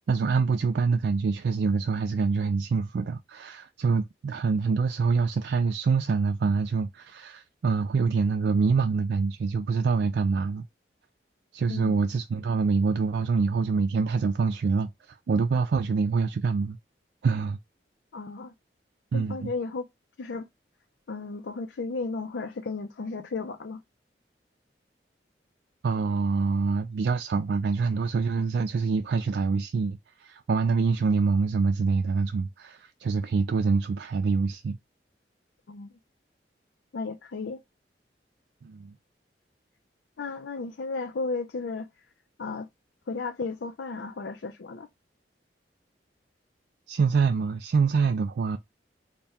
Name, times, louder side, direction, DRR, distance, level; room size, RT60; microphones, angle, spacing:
voice 1, 0.1-10.6 11.5-16.8 17.2-17.6 19.1-19.5 25.8-34.8 38.6-38.9 46.9-48.6, right 4 dB, 70° right, 0.3 m, -25 dB
voice 2, 18.1-18.5 19.1-19.9 20.2-20.5 21.1-23.8 35.7-35.9 36.9-37.6 40.2-41.9 42.4-42.7 43.1-44.9, left 3 dB, 85° left, 0.5 m, -34 dB
4.2 x 2.2 x 3.4 m
head